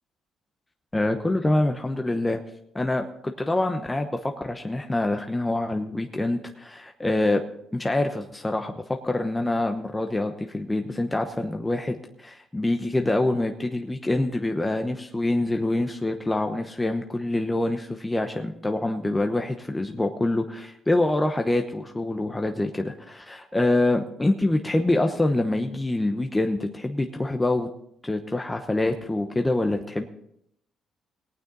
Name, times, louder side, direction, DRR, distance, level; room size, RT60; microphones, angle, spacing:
voice 1, 0.9-2.4 2.7-7.4 7.7-27.7 28.0-30.1, left 2 dB, 15° left, 5 dB, 0.9 m, -25 dB
19.0 x 9.0 x 4.0 m, 0.74 s
cardioid pair, 90°, 0 cm